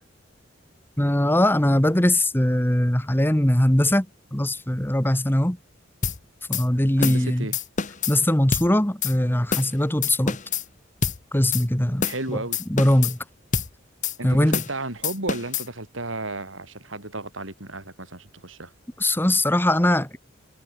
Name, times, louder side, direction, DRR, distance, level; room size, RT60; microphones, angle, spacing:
voice 1, 1.0-4.1 4.3-5.6 6.5-7.5 8.1-10.4 11.3-12.0 12.3-12.4 12.7-13.2 14.2-14.6 19.0-20.2, left 1 dB, 10° left, 1.4 m, -21 dB
sound 1, 6.0-6.2 6.5-6.6 7.0-7.2 7.5-8.1 8.5-8.7 9.0-9.1 9.5-9.7 10.0-10.6 11.0-11.2 11.5-11.6 12.0-12.2 12.5-13.1 13.5-13.7 14.0-14.2 14.5-14.7 15.0-15.7, left 6 dB, 40° left, 1.4 m, -26 dB
voice 2, 7.0-7.5 12.0-12.6 14.2-18.7, right 2 dB, 80° right, 7.9 m, -33 dB
head